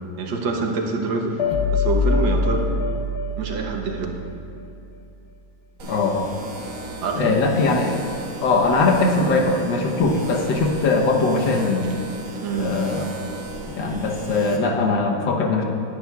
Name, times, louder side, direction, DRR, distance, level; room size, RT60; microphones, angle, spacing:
voice 1, 0.2-1.4 1.7-2.7 3.4-4.2 7.0-7.4 12.4-12.7, right 4 dB, 85° right, 2 dB, 1.8 m, -26 dB
sound 1, 1.4-4.6, left 3 dB, 50° left, 0.8 m, -24 dB
voice 2, 5.8-6.3 7.1-8.0 8.4-11.8 12.6-13.1 13.8-15.6, left 3 dB, 75° left, 1 dB, 1.7 m, -20 dB
sound 2, 5.8-14.6, right 1 dB, 55° right, 1.4 m, -36 dB
18.0 x 10.5 x 2.4 m, 2.6 s
omnidirectional pair, 2.0 m